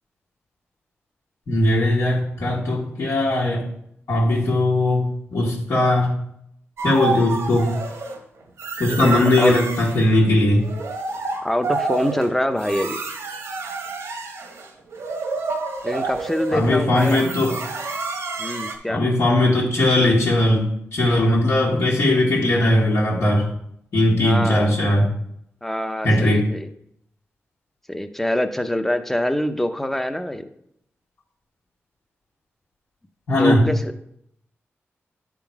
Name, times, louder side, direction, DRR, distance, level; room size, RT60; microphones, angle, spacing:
voice 1, 1.5-3.6 4.1-6.1 6.8-7.7 8.8-10.6 16.5-17.6 18.9-20.7 20.9-23.5 23.9-25.1 26.0-26.5 33.3-33.7, left 1 dB, 80° left, -5 dB, 1.6 m, -19 dB
sound 1, 6.8-8.2 8.6-10.0 10.5-18.7, right 4 dB, 85° right, 1.0 m, -29 dB
voice 2, 8.9-9.6 11.4-13.0 15.8-17.2 18.4-19.0 24.2-24.7 25.6-26.7 27.9-30.4 33.3-34.0, left 1 dB, 5° left, 8 dB, 0.6 m, -25 dB
9.7 x 3.8 x 4.5 m, 0.73 s
wide cardioid pair, 90°, 5 cm